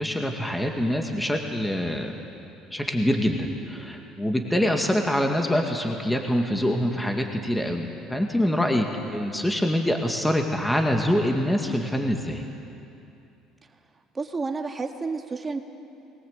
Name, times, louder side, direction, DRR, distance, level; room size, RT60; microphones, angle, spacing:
voice 1, 0.0-2.1 2.7-12.4, equal, 5° left, 3 dB, 2.1 m, -25 dB
voice 2, 14.1-15.6, right 4 dB, 25° right, 4 dB, 2.0 m, -30 dB
21.5 x 20.0 x 8.2 m, 2.8 s
supercardioid pair, 85°, 0 cm